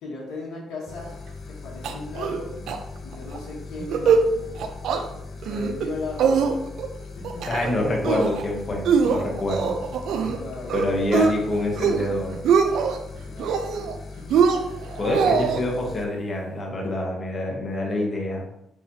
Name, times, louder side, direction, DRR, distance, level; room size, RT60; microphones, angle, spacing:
voice 1, 0.0-2.7 3.0-4.5 5.1-6.5 7.2-7.5 10.4-11.2 13.3-14.3 15.0-15.4, left 3 dB, 80° left, -3 dB, 1.0 m, -38 dB
sound 1, 0.9-16.1, left 4 dB, 55° left, 0.5 m, -39 dB
sound 2, 1.8-2.4 2.7-2.8 3.1-3.4 3.8-4.3 4.6-5.0 5.4-5.9 6.2-6.9 7.2-7.7 8.0-8.4 8.9-10.4 10.7-11.3 11.7-12.1 12.3-13.0 13.4-14.0 14.3-15.6, right 6 dB, 75° right, 0.4 m, -22 dB
voice 2, 7.5-9.8 10.7-12.3 15.0-18.4, left 1 dB, 40° left, 0 dB, 1.1 m, -26 dB
3.9 x 3.0 x 2.7 m, 0.82 s
cardioid pair, 90°, 0 cm